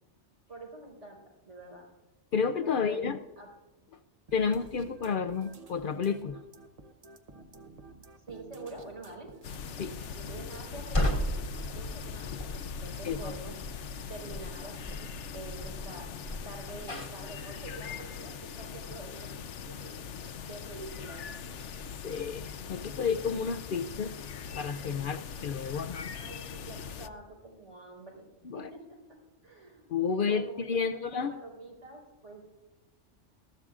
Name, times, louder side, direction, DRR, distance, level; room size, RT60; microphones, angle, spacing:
voice 1, 0.5-1.9 2.4-3.1 3.4-3.5 8.3-9.3 10.1-11.2 11.7-13.6 14.1-14.8 15.3-16.1 16.4-19.3 19.8-21.2 25.0-25.8 26.2-29.0 29.4-32.4, right 2 dB, 80° right, -2 dB, 4.6 m, -46 dB
voice 2, 2.3-3.2 4.3-6.4 9.8-10.0 13.0-13.3 22.0-24.1 24.5-26.1 28.4-28.7 29.9-31.3, left 6 dB, 60° left, 10 dB, 0.6 m, -31 dB
sound 1, 4.3-12.3, right 3 dB, 35° right, 0.8 m, -52 dB
sound 2, 9.4-27.1, left 6 dB, 75° left, 1.0 m, -41 dB
sound 3, 10.9-17.3, equal, 30° left, 1.2 m, -35 dB
20.5 x 13.5 x 2.4 m, 1.1 s
omnidirectional pair, 1.2 m